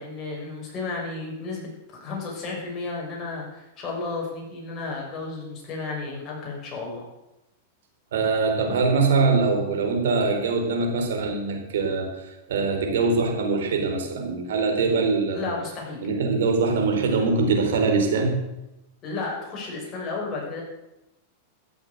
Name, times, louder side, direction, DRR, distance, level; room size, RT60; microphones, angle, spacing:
voice 1, 0.0-7.0 14.9-15.0 15.3-16.0 19.0-20.6, left 3 dB, 30° left, -2 dB, 6.3 m, -33 dB
voice 2, 8.1-15.6 16.0-18.4, right 4 dB, 80° right, 3 dB, 4.0 m, -23 dB
14.0 x 8.0 x 8.1 m, 0.94 s
supercardioid pair, 135°, 0 cm